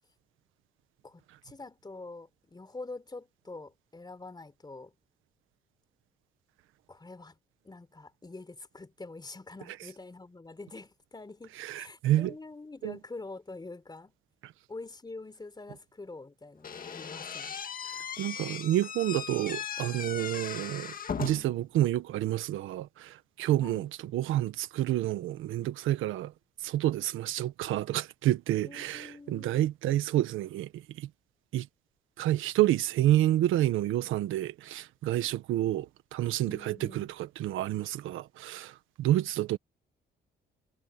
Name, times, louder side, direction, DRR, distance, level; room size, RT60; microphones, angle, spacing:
voice 1, 1.0-4.9 6.9-7.4 7.6-14.1 14.7-17.6 23.6-23.9 28.6-29.5 36.4-37.1, left 3 dB, 20° left, 4.1 m, -45 dB
voice 2, 11.6-12.3 12.8-13.0 14.4-14.5 18.2-26.3 26.6-31.1 31.5-31.7 32.2-39.6, right 14 dB, 90° right, 1.4 m, -29 dB
Slam / Squeak, 16.6-21.6, left 7 dB, 45° left, 1.9 m, -38 dB
cardioid pair, 90°, 20 cm